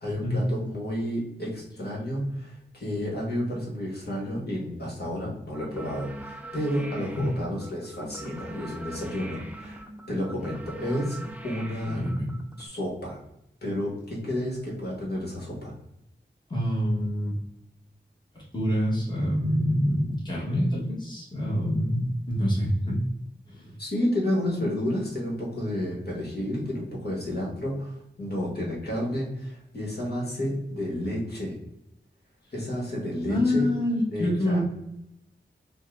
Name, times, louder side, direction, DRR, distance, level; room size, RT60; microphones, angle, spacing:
voice 1, 0.0-11.2 11.4-12.0 12.6-13.2 13.6-15.7 23.8-31.6 32.5-33.7 34.1-34.6, equal, 55° left, -4 dB, 1.4 m, -31 dB
sound 1, 5.5-12.7, right 1 dB, 10° right, 0.4 m, -42 dB
voice 2, 11.8-12.3 16.5-17.3 18.5-23.0 23.5-23.7 33.3-34.6, equal, 25° left, -5 dB, 1.2 m, -26 dB
5.2 x 2.2 x 2.5 m, 0.83 s
wide cardioid pair, 85°, 19 cm